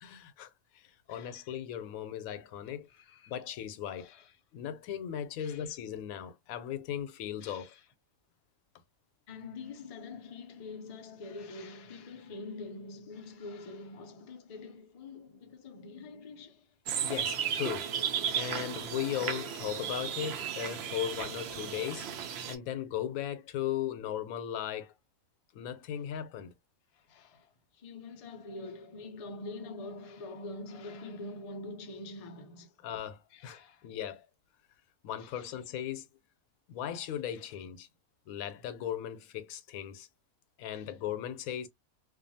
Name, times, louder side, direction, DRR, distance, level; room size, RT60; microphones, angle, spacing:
voice 1, 0.0-2.9 3.3-4.1 4.5-7.7 17.0-22.1 22.5-24.9 25.5-26.5 32.8-34.3 35.0-36.1 36.7-37.9 38.3-40.1 40.6-41.7, left 10 dB, 85° left, 1.0 m, -37 dB
voice 2, 1.1-1.4 3.1-3.3 4.0-4.2 5.4-5.6 7.4-7.7 9.3-16.6 27.1-27.5 27.8-32.7 33.3-33.8 35.4-35.5, left 3 dB, 65° left, 0.3 m, -45 dB
sound 1, 16.9-22.6, right 8 dB, 60° right, 0.7 m, -35 dB
2.5 x 2.3 x 2.6 m
omnidirectional pair, 1.4 m